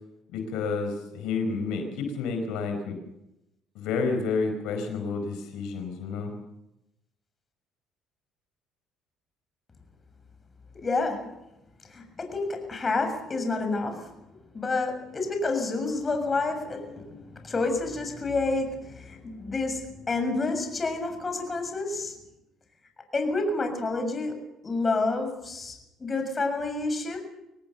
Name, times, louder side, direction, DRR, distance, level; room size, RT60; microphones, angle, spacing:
voice 1, 0.3-3.0 3.7-6.3, left 4 dB, 80° left, 5 dB, 4.8 m, -30 dB
voice 2, 10.8-11.3 11.9-14.1 14.5-22.2 23.1-27.2, left 3 dB, 25° left, 6 dB, 6.8 m, -29 dB
25.0 x 18.0 x 7.0 m, 0.88 s
cardioid pair, 100°, 0 cm